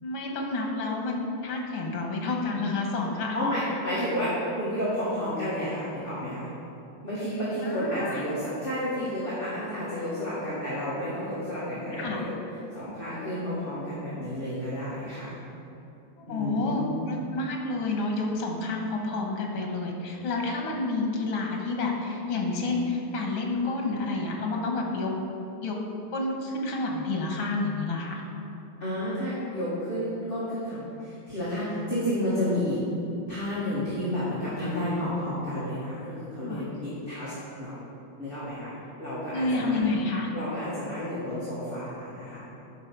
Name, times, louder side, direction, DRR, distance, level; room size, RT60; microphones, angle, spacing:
voice 1, 0.0-3.4 7.6-8.2 11.9-12.2 16.3-25.1 25.6-25.8 26.1-28.2 36.4-36.6 39.3-40.3, left 3 dB, 85° left, 0 dB, 2.1 m, -29 dB
voice 2, 3.1-6.5 7.0-12.3 12.7-15.3 16.3-16.9 28.8-32.8 33.3-37.8 38.2-38.7 39.0-39.9 40.3-42.4, equal, 30° left, -10 dB, 2.0 m, -31 dB
9.7 x 5.5 x 6.0 m, 2.9 s
omnidirectional pair, 2.2 m